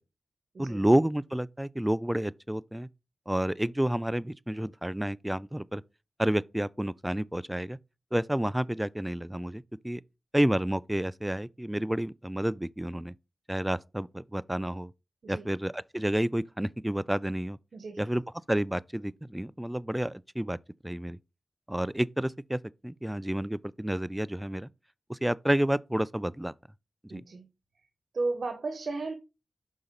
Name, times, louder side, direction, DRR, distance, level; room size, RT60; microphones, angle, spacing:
voice 1, 0.6-2.9 3.3-5.8 6.2-7.8 8.1-10.0 10.3-13.1 13.5-14.9 15.3-17.6 18.0-18.2 18.5-20.6 20.8-21.2 21.7-24.7 25.1-26.5 27.0-27.2, right 1 dB, 10° right, 0.3 m, -30 dB
voice 2, 17.7-18.1 27.1-27.5 28.1-29.1, right 3 dB, 75° right, 0.9 m, -34 dB
5.7 x 4.0 x 5.0 m
cardioid pair, 55°, 0 cm